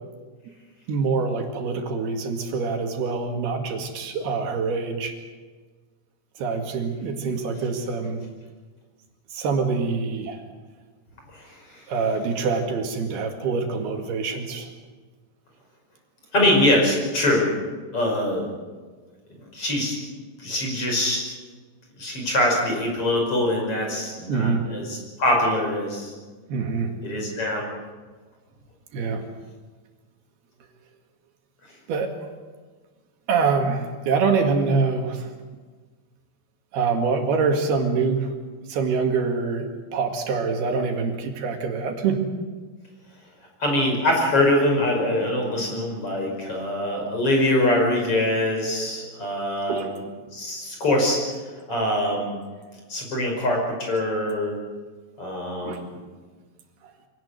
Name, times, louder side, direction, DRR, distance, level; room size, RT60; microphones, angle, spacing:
voice 1, 0.9-5.1 6.4-8.2 9.3-10.4 11.9-14.7 24.3-24.6 26.5-26.9 28.9-29.2 31.9-32.1 33.3-35.3 36.7-38.3 38.7-42.2 49.7-49.9 55.6-55.8, right 4 dB, 75° right, 4 dB, 4.0 m, -25 dB
voice 2, 11.3-11.8 16.3-17.5 17.9-18.5 19.5-20.0 20.4-21.3 22.0-26.1 27.0-27.6 43.6-50.0 50.3-51.3 51.7-52.4 52.9-54.5 55.2-56.0, left 1 dB, 35° left, 1 dB, 6.2 m, -23 dB
24.5 x 18.0 x 8.1 m, 1.4 s
omnidirectional pair, 4.6 m